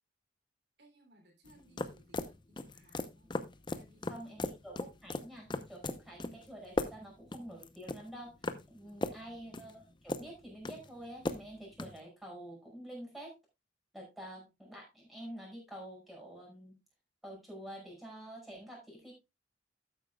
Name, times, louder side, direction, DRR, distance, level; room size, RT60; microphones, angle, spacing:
voice 1, 0.8-3.3 3.7-4.4 8.8-9.2, right 1 dB, 65° right, 2 dB, 3.1 m, -64 dB
sound 1, 1.4-12.0, left 2 dB, 25° left, 0.7 m, -39 dB
voice 2, 4.1-8.4 8.7-13.3 13.9-16.8 17.2-19.1, right 1 dB, ahead, -3 dB, 5.5 m, -48 dB
12.5 x 8.9 x 2.3 m, 0.23 s
head